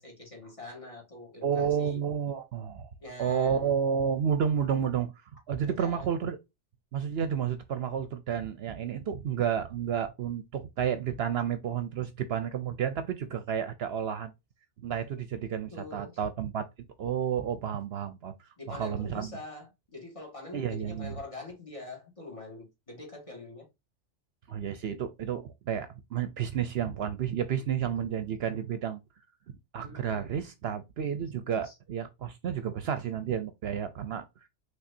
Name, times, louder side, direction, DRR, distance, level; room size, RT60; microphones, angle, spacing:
voice 1, 0.0-2.0 3.0-3.7 5.6-6.2 15.7-16.2 18.6-23.7 29.8-30.3 31.6-31.8, left 2 dB, 30° left, 2.1 m, -44 dB
voice 2, 1.4-2.9 3.2-5.1 5.5-6.4 6.9-14.3 14.8-16.7 17.0-18.3 18.7-19.4 20.5-21.2 24.5-29.0 29.5-34.5, right 8 dB, 65° right, 0.8 m, -31 dB
5.8 x 3.3 x 2.7 m
omnidirectional pair, 1.2 m